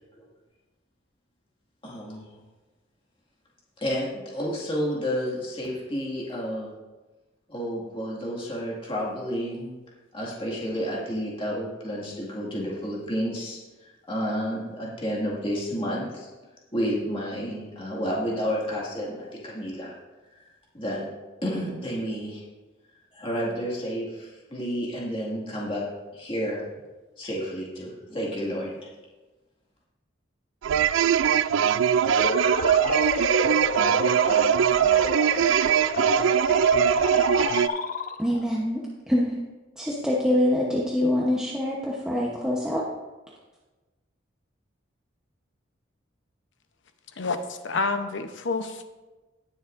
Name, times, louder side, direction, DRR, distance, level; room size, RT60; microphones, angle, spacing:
voice 1, 1.8-2.3 3.8-6.7 7.5-9.7 10.1-16.3 16.7-20.0 20.7-21.1 21.4-22.4 23.1-25.8 26.1-26.6 27.2-28.7, equal, 25° left, -4 dB, 2.0 m, -30 dB
sound 1, 30.6-37.7, right 8 dB, 80° right, 0.3 m, -21 dB
sound 2, 32.0-38.5, left 4 dB, 45° left, 0.5 m, -30 dB
voice 2, 38.2-39.4 39.8-42.9, left 1 dB, 5° right, -5 dB, 0.9 m, -25 dB
voice 3, 47.2-48.8, left 3 dB, 70° left, 8 dB, 0.8 m, -28 dB
18.0 x 7.1 x 2.6 m, 1.2 s
head